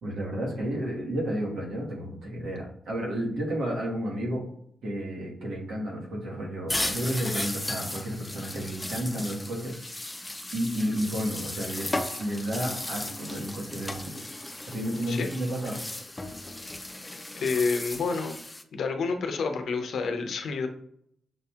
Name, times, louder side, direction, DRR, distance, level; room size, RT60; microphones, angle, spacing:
voice 1, 0.0-4.4 4.8-9.7 10.5-14.1 14.7-15.8, equal, 85° right, -3 dB, 1.2 m, -31 dB
sound 1, 6.7-18.6, left 1 dB, 15° left, 0.4 m, -36 dB
voice 2, 17.4-18.4 18.7-20.7, left 4 dB, 80° left, 6 dB, 0.5 m, -28 dB
6.1 x 2.7 x 2.3 m, 0.70 s
cardioid pair, 70°, 0 cm